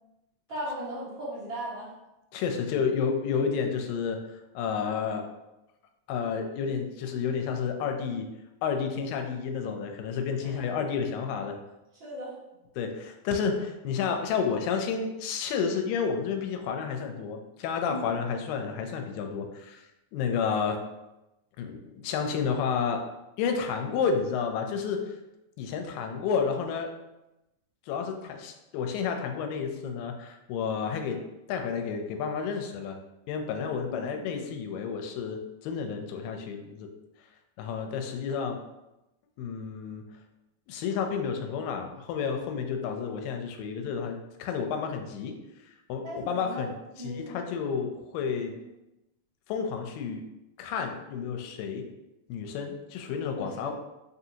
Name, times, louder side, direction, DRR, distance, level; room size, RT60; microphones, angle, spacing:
voice 1, 0.5-1.9 10.4-10.6 12.0-12.3 17.9-18.0 33.9-34.4 46.0-46.6 47.0-47.3 53.3-53.7, equal, 75° right, -8 dB, 1.0 m, -37 dB
voice 2, 2.3-4.2 4.6-5.3 6.1-8.3 8.6-11.6 12.8-19.8 20.1-20.8 21.6-23.0 23.4-25.1 25.6-26.9 27.9-31.2 31.5-33.0 33.3-36.9 37.6-38.6 39.4-40.0 40.7-45.4 45.9-46.7 47.0-48.5 49.5-50.2 50.6-51.9 52.3-53.7, left 6 dB, 85° left, 4 dB, 2.2 m, -30 dB
5.2 x 2.6 x 2.8 m, 0.95 s
omnidirectional pair, 3.9 m